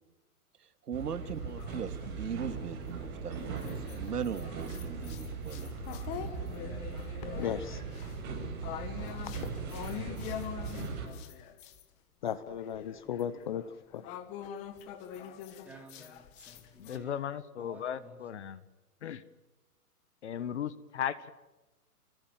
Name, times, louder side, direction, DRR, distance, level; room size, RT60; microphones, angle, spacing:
voice 1, 0.6-5.7, right 7 dB, 80° right, 10 dB, 2.8 m, -39 dB
sound 1, 0.9-11.1, right 5 dB, 20° right, 7.6 m, -39 dB
sound 2, 1.0-2.4 2.9-11.8 12.2-17.0, left 9 dB, 15° left, 1.3 m, -44 dB
voice 2, 7.4-7.8 9.3-9.4 12.2-14.0, left 9 dB, 30° left, 15 dB, 0.9 m, -36 dB
voice 3, 15.6-17.2 17.6-18.2, right 2 dB, 5° right, 1 dB, 3.1 m, -53 dB
voice 4, 16.8-18.6 19.0-19.2 20.2-21.3, left 9 dB, 45° left, 16 dB, 1.6 m, -36 dB
28.5 x 24.5 x 7.5 m, 1.1 s
hypercardioid pair, 165°, 46 cm